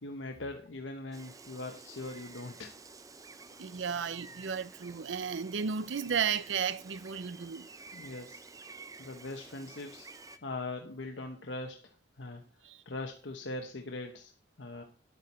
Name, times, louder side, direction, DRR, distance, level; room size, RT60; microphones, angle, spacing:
voice 1, 0.0-2.7 3.5-3.6 7.9-8.4 9.0-10.1 10.4-11.8 12.2-12.4 12.9-14.3 14.6-14.8, left 2 dB, 85° left, 1.0 m, -41 dB
Gull seagull, 1.1-10.4, right 4 dB, 20° right, 0.6 m, -51 dB
voice 2, 3.6-7.7 12.6-12.8, right 6 dB, 85° right, 0.5 m, -34 dB
9.8 x 8.8 x 4.2 m
head